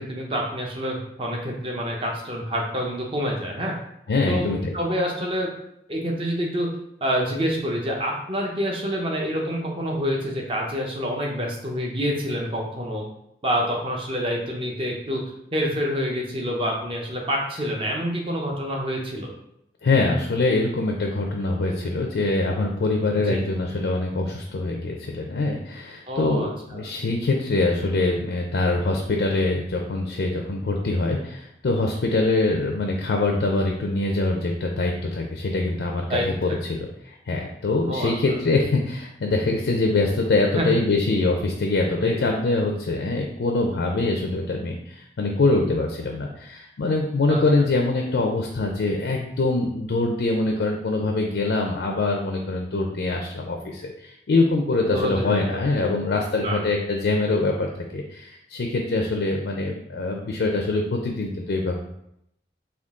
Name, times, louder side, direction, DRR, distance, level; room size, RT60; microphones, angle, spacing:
voice 1, 0.0-3.7 4.3-4.5 4.7-5.5 5.9-6.7 7.0-13.0 13.4-15.2 15.5-19.3 23.2-23.4 26.1-26.9 36.1-36.3 37.9-38.1 40.5-40.8 42.0-42.2 47.3-47.4 54.8-55.4 56.4-56.7, equal, 30° right, 0 dB, 0.6 m, -27 dB
voice 2, 4.1-4.7 19.8-61.8, left 2 dB, 75° left, 1 dB, 0.4 m, -24 dB
3.7 x 2.3 x 3.5 m, 0.78 s
head